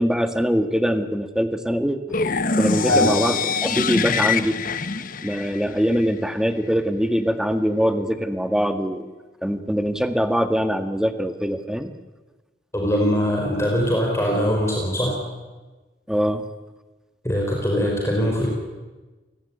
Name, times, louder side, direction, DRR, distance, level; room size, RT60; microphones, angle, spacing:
voice 1, 0.0-2.0 2.6-4.6 5.2-9.1 9.4-11.9 16.1-16.4, equal, 5° right, 8 dB, 1.7 m, -23 dB
sound 1, 2.1-6.1, left 4 dB, 50° left, 1.1 m, -23 dB
voice 2, 12.7-15.2 17.2-18.5, equal, 15° left, -1 dB, 5.1 m, -22 dB
29.5 x 17.0 x 10.0 m, 1.2 s
head